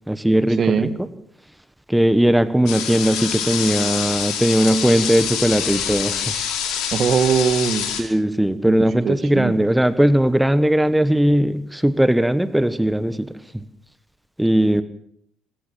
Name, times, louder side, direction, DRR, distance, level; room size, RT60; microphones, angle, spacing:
voice 1, 0.1-0.9 1.9-6.3 6.7-6.8 8.0-13.6 14.4-14.8, right 1 dB, 5° right, 13 dB, 1.4 m, -19 dB
voice 2, 0.6-1.0 6.9-7.9 8.7-9.5, right 7 dB, 45° right, 12 dB, 2.0 m, -21 dB
sound 1, 2.7-8.0, left 8 dB, 65° left, 4.9 m, -26 dB
26.5 x 15.5 x 7.8 m, 0.69 s
hypercardioid pair, 50°, 0 cm